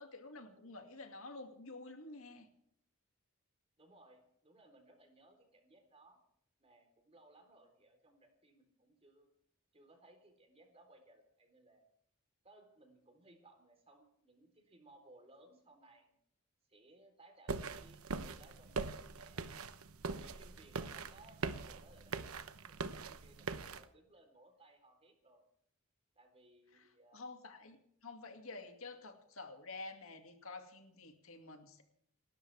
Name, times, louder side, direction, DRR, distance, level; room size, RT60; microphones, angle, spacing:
voice 1, 0.0-2.5 26.7-31.8, left 3 dB, 70° left, 5 dB, 2.3 m, -50 dB
voice 2, 3.8-6.2 6.6-9.3 9.7-11.8 12.4-16.1 16.7-19.5 20.1-22.2 22.6-22.8 23.1-25.4 26.2-27.2, right 2 dB, 30° right, 4 dB, 3.9 m, -63 dB
sound 1, 17.5-23.8, right 4 dB, 85° right, 1.0 m, -42 dB
29.5 x 13.0 x 3.5 m, 0.70 s
head